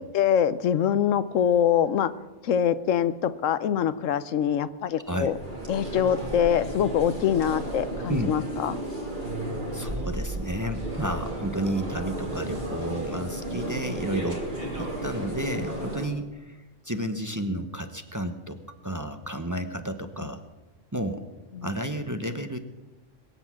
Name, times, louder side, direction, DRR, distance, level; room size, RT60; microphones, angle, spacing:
voice 1, 0.0-2.1 2.4-5.3 5.7-8.8 21.6-21.7, left 9 dB, 85° left, 14 dB, 1.1 m, -24 dB
sound 1, 5.0-16.1, right 1 dB, 40° right, 3.1 m, -33 dB
voice 2, 9.7-16.6 16.8-20.4 20.9-21.2 21.6-22.6, right 1 dB, 15° right, 7 dB, 0.8 m, -31 dB
21.5 x 8.1 x 7.4 m, 1.1 s
omnidirectional pair, 1.3 m